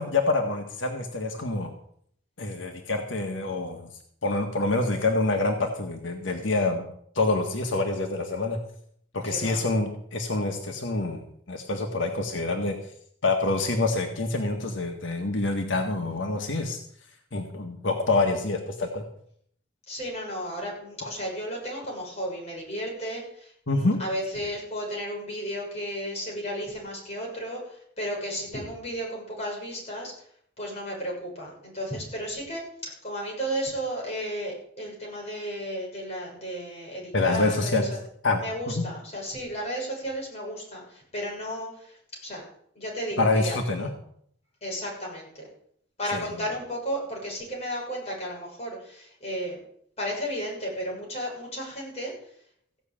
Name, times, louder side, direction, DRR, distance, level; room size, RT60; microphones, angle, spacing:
voice 1, 0.0-1.7 2.4-3.9 4.2-6.9 7.1-8.6 9.1-12.7 13.2-16.8 17.3-19.0 21.0-21.1 23.7-24.0 37.1-37.9 38.2-38.4 38.7-38.8 43.2-43.9 46.1-46.3, left 2 dB, 85° left, 3 dB, 1.5 m, -26 dB
voice 2, 9.2-9.6 19.9-30.3 30.6-37.9 38.3-42.4 42.7-43.9 44.6-45.5 46.0-49.6 50.0-52.3, equal, 35° left, -2 dB, 6.6 m, -34 dB
15.5 x 6.4 x 8.7 m, 0.67 s
head